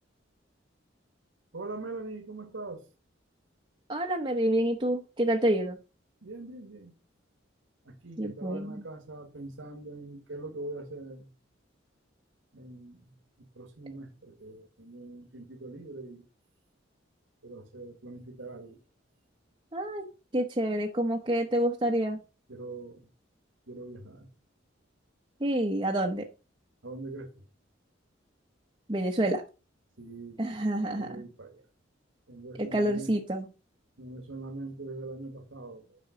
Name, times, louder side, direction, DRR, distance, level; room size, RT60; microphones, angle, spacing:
voice 1, 1.5-2.8 6.2-6.9 7.8-11.3 12.5-16.3 17.4-18.8 22.5-23.1 23.7-24.3 26.8-27.3 30.0-30.7 31.0-31.6 32.3-33.1 34.0-36.0, right 2 dB, 85° right, 1.6 m, -42 dB
voice 2, 3.9-5.8 8.2-8.8 19.7-20.1 20.3-22.2 25.4-26.3 28.9-29.4 30.4-31.2 32.6-33.4, right 1 dB, 25° right, 0.9 m, -28 dB
8.9 x 5.3 x 5.0 m
head